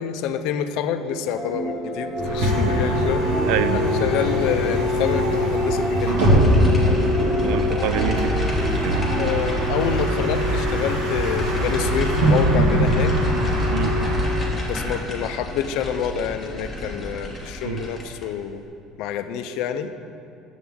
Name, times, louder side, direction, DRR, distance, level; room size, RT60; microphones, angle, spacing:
voice 1, 0.0-3.3 3.7-6.2 9.1-13.2 14.6-18.6 19.0-20.0, left 8 dB, 60° left, 8 dB, 0.4 m, -27 dB
sound 1, 1.1-9.3, right 1 dB, 30° right, 1.4 m, -30 dB
Bus, 2.1-14.6, equal, 80° right, 1.7 m, -21 dB
voice 2, 3.5-3.8 4.2-4.3 7.4-8.3 8.8-9.1 13.7-13.9 17.6-17.8, right 10 dB, 65° right, 12 dB, 0.3 m, -26 dB
sound 2, 6.0-18.3, equal, ahead, 1.1 m, -34 dB
9.2 x 6.9 x 3.6 m, 2.5 s
cardioid pair, 175°, 0 cm